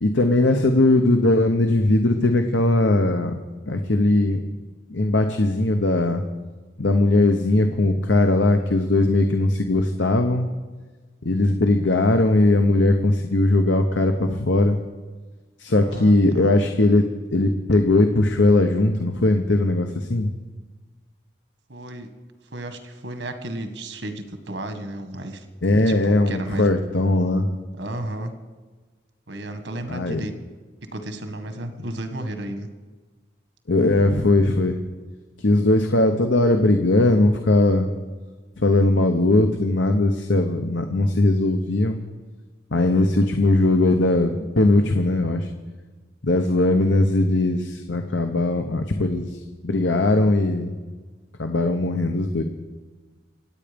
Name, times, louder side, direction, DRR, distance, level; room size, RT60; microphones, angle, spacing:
voice 1, 0.0-3.3 3.7-4.4 4.9-6.2 6.8-10.5 11.2-14.8 15.6-17.0 17.3-20.3 25.6-27.6 29.9-30.2 33.7-34.8 35.4-37.9 38.6-42.0 42.7-45.5 46.2-50.8 51.4-52.4, left 2 dB, 85° left, 6 dB, 1.0 m, -19 dB
voice 2, 15.8-16.2 21.7-22.1 22.5-25.4 25.9-26.7 27.7-28.3 29.3-30.3 30.9-32.7, right 1 dB, 80° right, 7 dB, 1.7 m, -33 dB
26.0 x 8.9 x 5.3 m, 1.3 s
head